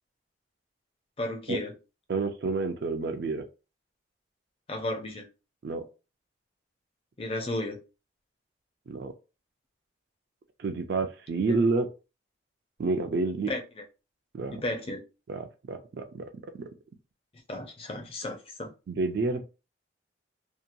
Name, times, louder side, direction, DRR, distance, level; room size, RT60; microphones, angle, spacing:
voice 1, 1.2-1.7 4.7-5.2 7.2-7.8 13.5-13.6 14.6-15.0 17.5-18.7, left 1 dB, 30° left, 0.5 m, -33 dB
voice 2, 2.1-3.4 5.6-5.9 8.9-9.1 10.6-11.9 12.8-13.5 14.3-14.6 15.3-16.3 18.9-19.4, right 3 dB, 55° right, 0.3 m, -29 dB
2.7 x 2.2 x 2.5 m
head